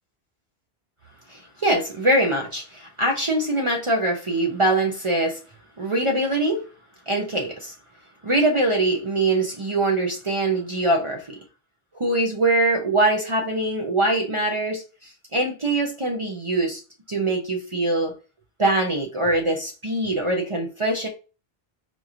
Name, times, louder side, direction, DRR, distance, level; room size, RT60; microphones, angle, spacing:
voice 1, 1.3-5.4 5.8-6.6 7.1-7.7 8.2-11.4 11.9-16.8 17.1-18.1 18.6-21.1, right 2 dB, 35° right, 0.6 m, -23 dB
4.3 x 2.9 x 2.4 m
omnidirectional pair, 1.0 m